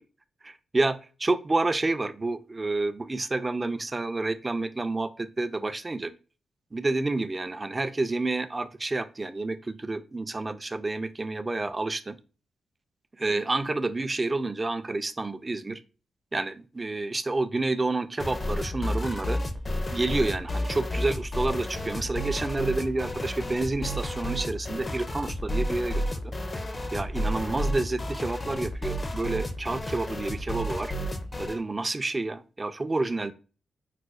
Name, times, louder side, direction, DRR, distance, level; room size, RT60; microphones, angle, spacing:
voice 1, 0.4-6.1 6.7-12.2 13.2-15.8 16.3-19.4 19.9-26.3 26.9-30.9 31.4-33.3, right 2 dB, 30° right, 11 dB, 0.3 m, -29 dB
sound 1, 18.2-31.6, equal, 30° left, 0.4 m, -31 dB
4.8 x 2.0 x 2.3 m, 0.35 s
cardioid pair, 65°, 0 cm